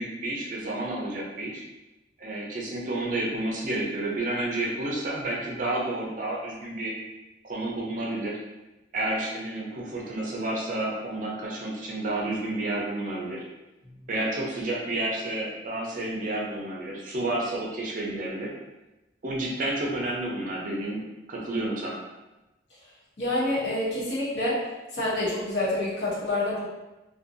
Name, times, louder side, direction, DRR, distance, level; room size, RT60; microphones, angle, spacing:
voice 1, 0.0-1.6 2.2-6.9 7.4-8.4 8.9-13.4 14.1-18.5 19.2-21.0 21.3-22.0, right 1 dB, 45° right, -3 dB, 0.5 m, -30 dB
voice 2, 23.2-24.6 24.9-26.6, left 1 dB, 70° left, -7 dB, 0.9 m, -27 dB
2.6 x 2.2 x 2.5 m, 1.0 s
head